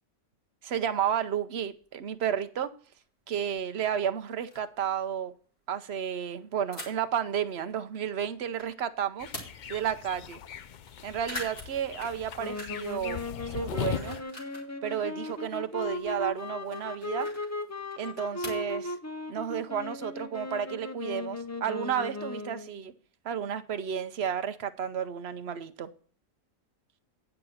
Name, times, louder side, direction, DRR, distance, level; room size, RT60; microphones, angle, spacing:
voice 1, 0.6-2.7 3.3-5.3 5.7-9.3 9.7-10.4 11.0-13.2 13.5-14.2 14.8-17.3 18.0-19.0 19.3-22.9 23.2-25.9, right 8 dB, 55° right, 1.0 m, -32 dB
sound 1, 1.8-1.9 3.0-3.1 3.6-3.7 3.9-4.0 4.3-4.8 6.7-7.2 7.7-8.7 9.0-9.9 10.3-10.4 10.6-10.9 11.2-13.0 13.2-14.7 15.1-18.8, left 1 dB, 40° left, 3.6 m, -44 dB
sound 2, 9.2-14.2, left 9 dB, 75° left, 0.4 m, -39 dB
sound 3, 12.4-22.8, left 2 dB, 15° left, 0.6 m, -37 dB
9.9 x 5.9 x 6.3 m
omnidirectional pair, 1.4 m